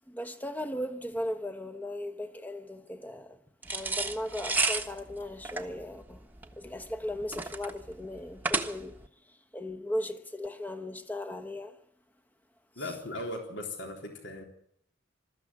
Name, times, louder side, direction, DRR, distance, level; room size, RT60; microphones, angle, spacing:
voice 1, 0.1-3.4 3.7-6.2 6.6-9.0 9.5-11.8 12.8-12.9, left 1 dB, 10° left, 1.1 m, -37 dB
sound 1, 3.6-9.1, right 3 dB, 10° right, 1.3 m, -32 dB
voice 2, 12.8-14.4, left 1 dB, 60° left, 3.8 m, -38 dB
21.5 x 13.5 x 9.8 m
head